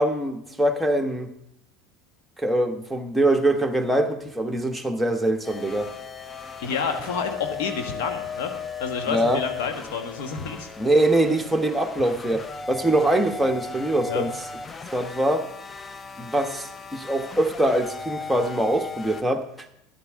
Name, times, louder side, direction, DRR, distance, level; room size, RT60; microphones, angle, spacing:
voice 1, 0.0-1.3 2.4-5.9 9.1-9.4 10.8-14.3 14.9-15.5 16.2-19.7, right 1 dB, 5° right, 3 dB, 1.2 m, -23 dB
sound 1, 5.4-19.2, left 5 dB, 25° left, 0.6 m, -37 dB
voice 2, 6.6-8.5 8.8-10.7 14.1-14.2, left 6 dB, 65° left, 5 dB, 1.5 m, -29 dB
13.0 x 11.0 x 3.6 m, 0.77 s
figure-of-eight pair, 75°, 0 cm